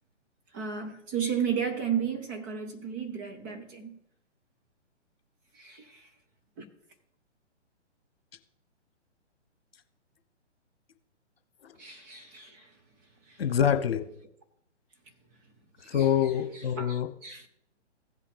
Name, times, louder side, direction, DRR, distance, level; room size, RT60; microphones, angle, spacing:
voice 1, 0.5-4.0 5.5-6.1 6.6-6.7 11.8-12.7 13.3-13.4 15.8-17.5, right 7 dB, 15° right, 0.6 m, -34 dB
voice 2, 13.4-14.1 15.9-17.1, left 9 dB, 55° left, 1.1 m, -26 dB
16.0 x 5.5 x 3.3 m
figure-of-eight pair, 135°, 35 cm